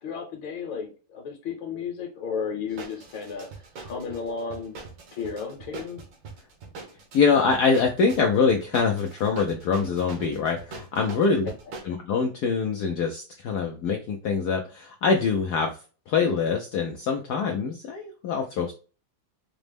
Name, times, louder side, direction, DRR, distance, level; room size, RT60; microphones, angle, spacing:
voice 1, 0.0-3.5 3.8-4.8 5.1-6.0, left 6 dB, 70° left, 1 dB, 1.4 m, -33 dB
sound 1, 2.7-11.8, right 4 dB, 70° right, 1.7 m, -42 dB
voice 2, 7.1-11.5 11.8-15.7 16.1-18.7, left 5 dB, 85° left, 2 dB, 0.8 m, -24 dB
5.1 x 2.0 x 3.3 m, 0.37 s
omnidirectional pair, 2.3 m